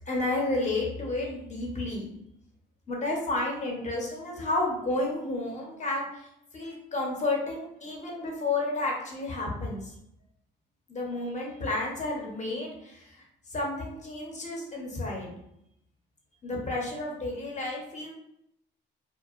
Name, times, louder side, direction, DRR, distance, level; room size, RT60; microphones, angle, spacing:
voice 1, 0.1-2.1 2.9-9.9 10.9-13.2 13.5-15.4 16.4-18.1, left 2 dB, 35° left, -1 dB, 0.9 m, -31 dB
2.8 x 2.1 x 2.4 m, 0.78 s
cardioid pair, 90°, 20 cm